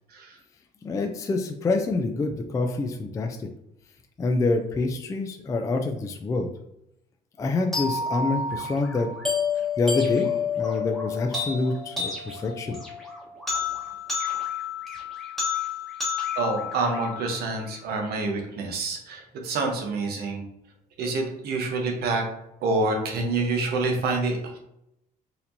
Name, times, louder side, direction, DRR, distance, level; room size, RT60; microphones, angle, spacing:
voice 1, 0.8-3.4 4.2-6.5 7.4-9.1 9.8-12.8, left 3 dB, 20° left, 4 dB, 0.3 m, -26 dB
sound 1, 7.7-17.7, left 5 dB, ahead, 1.1 m, -30 dB
voice 2, 16.4-20.4 21.0-22.3 22.6-24.6, right 3 dB, 70° right, 2 dB, 0.9 m, -27 dB
4.2 x 2.8 x 2.7 m, 0.81 s
cardioid pair, 110°, 17 cm